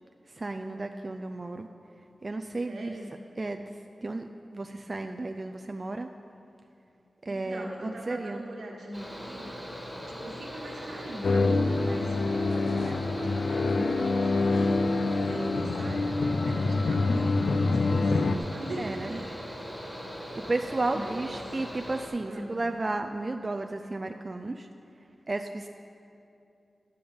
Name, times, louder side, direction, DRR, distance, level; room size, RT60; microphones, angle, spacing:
voice 1, 0.3-1.7 2.2-2.9 3.4-3.7 4.0-6.1 7.2-8.5 18.8-19.2 20.3-24.7 25.3-25.7, right 2 dB, 40° right, 5 dB, 0.4 m, -33 dB
voice 2, 2.7-3.1 7.3-9.5 10.1-14.7 15.1-16.1 16.4-19.4 20.9-21.4 22.3-22.6, right 1 dB, 85° right, -1 dB, 1.6 m, -41 dB
Mechanical fan, 8.9-22.1, equal, 15° left, 2.6 m, -40 dB
sound 1, 11.2-18.4, left 3 dB, 75° left, 0.4 m, -26 dB
11.5 x 7.0 x 5.1 m, 2.6 s
cardioid pair, 55°, 0 cm